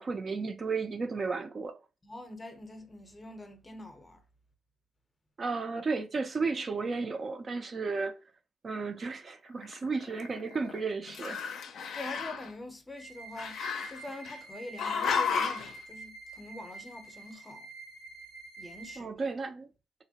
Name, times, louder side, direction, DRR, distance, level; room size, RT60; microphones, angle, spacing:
voice 1, 0.0-1.8 5.4-8.2 8.6-11.4 19.0-19.7, right 4 dB, 40° right, 0.3 m, -33 dB
voice 2, 2.0-4.2 11.9-13.6 13.9-17.7 18.6-19.1, left 2 dB, 20° left, 0.6 m, -44 dB
Growling, 9.6-10.8 11.1-12.5 13.4-14.4 14.8-15.7, left 6 dB, 65° left, 0.4 m, -33 dB
sound 1, 13.0-19.0, right 3 dB, 65° right, 0.8 m, -48 dB
2.9 x 2.1 x 2.7 m
cardioid pair, 90°, 0 cm